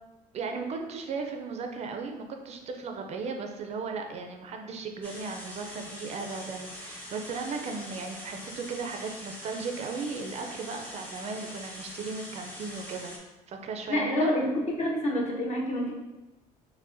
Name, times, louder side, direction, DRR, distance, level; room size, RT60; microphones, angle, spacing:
voice 1, 0.3-13.1 13.5-14.3, right 4 dB, 45° right, 4 dB, 0.4 m, -36 dB
sound 1, 5.0-13.2, equal, 10° left, 0.6 m, -43 dB
voice 2, 13.9-15.9, left 1 dB, 45° left, -1 dB, 0.8 m, -27 dB
4.7 x 2.1 x 2.5 m, 1.1 s
cardioid pair, 115°, 16 cm